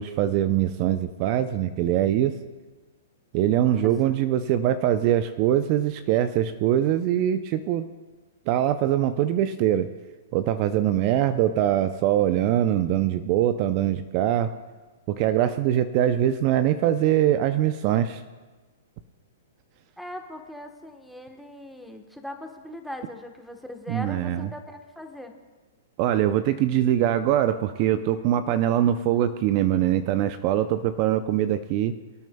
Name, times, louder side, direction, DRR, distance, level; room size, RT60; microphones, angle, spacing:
voice 1, 0.0-2.4 3.3-7.9 8.5-9.9 10.3-14.5 15.1-18.2 23.9-24.5 26.0-31.9, right 11 dB, 45° right, 11 dB, 0.5 m, -23 dB
voice 2, 20.0-25.3, left 1 dB, ahead, 5 dB, 1.1 m, -40 dB
23.5 x 9.1 x 2.3 m, 1.3 s
hypercardioid pair, 125°, 0 cm